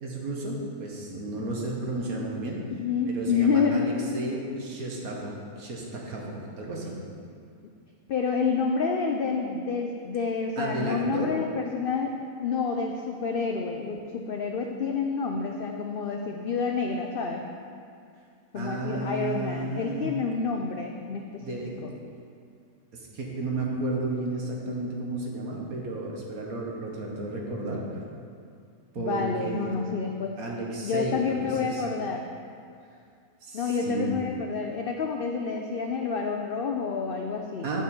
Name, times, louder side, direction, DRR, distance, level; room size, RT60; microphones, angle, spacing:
voice 1, 0.0-2.6 3.0-6.9 10.6-11.3 18.5-20.1 21.4-21.7 22.9-28.0 28.9-29.7 30.4-31.8 33.4-34.2 37.6-37.8, right 2 dB, 75° right, -2 dB, 1.7 m, -33 dB
voice 2, 2.8-3.9 8.1-17.4 18.5-21.5 21.8-21.9 29.0-30.4 30.8-32.3 33.5-37.7, left 5 dB, 85° left, 2 dB, 0.4 m, -28 dB
9.0 x 5.8 x 4.3 m, 2.3 s
omnidirectional pair, 1.5 m